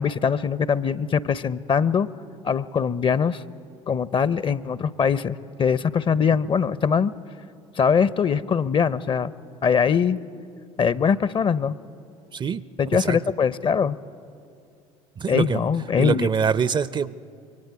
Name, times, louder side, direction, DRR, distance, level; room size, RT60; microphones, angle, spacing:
voice 1, 0.0-2.1 2.4-3.4 3.9-7.1 7.8-9.3 9.6-10.2 10.8-11.8 12.8-14.0 15.3-16.3, left 6 dB, 30° left, 18 dB, 0.6 m, -22 dB
voice 2, 15.2-15.6 16.0-17.2, right 6 dB, 25° right, 18 dB, 0.5 m, -24 dB
26.5 x 23.5 x 4.8 m, 2.5 s
figure-of-eight pair, 60°, 17 cm